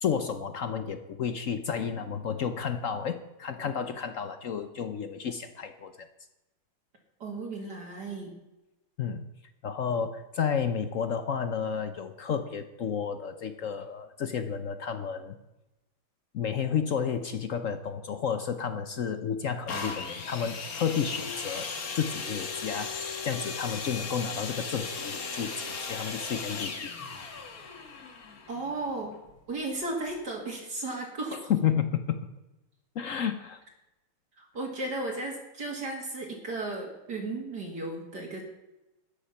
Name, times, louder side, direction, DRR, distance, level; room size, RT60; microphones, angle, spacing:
voice 1, 0.0-5.9 9.0-9.2 9.6-15.4 16.3-21.7 22.0-26.9 31.5-32.2 32.9-33.6, left 7 dB, 70° left, 10 dB, 0.7 m, -31 dB
voice 2, 7.2-8.3 28.5-29.1 29.5-31.5 34.4-38.4, right 2 dB, 50° right, 0 dB, 2.6 m, -35 dB
sound 1, 19.7-29.4 30.1-30.2, left 4 dB, 45° left, 1.7 m, -37 dB
13.5 x 10.0 x 5.6 m, 0.98 s
omnidirectional pair, 2.3 m